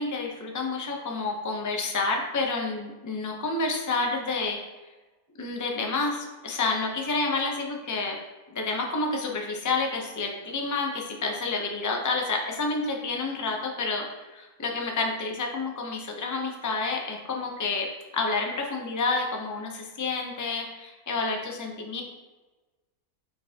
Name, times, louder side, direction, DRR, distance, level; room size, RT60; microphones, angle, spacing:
voice 1, 0.0-4.6 5.4-8.2 8.5-22.0, left 3 dB, 25° left, 1 dB, 0.4 m, -29 dB
8.6 x 4.6 x 2.8 m, 1.2 s
omnidirectional pair, 1.7 m